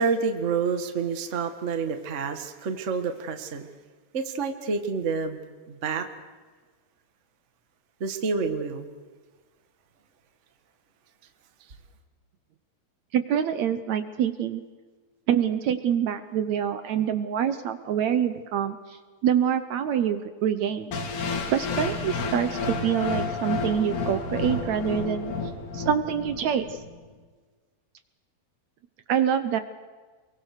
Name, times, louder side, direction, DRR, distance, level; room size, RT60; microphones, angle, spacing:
voice 1, 0.0-3.7 4.1-5.4 5.7-6.1 8.0-8.9, right 5 dB, 90° right, 7 dB, 0.6 m, -28 dB
voice 2, 13.1-14.6 15.3-21.0 21.5-25.3 25.7-26.8 29.1-29.6, right 9 dB, 70° right, 11 dB, 1.7 m, -26 dB
sound 1, 20.9-26.9, left 4 dB, 80° left, 4.4 m, -31 dB
27.5 x 23.0 x 6.6 m, 1.4 s
omnidirectional pair, 4.3 m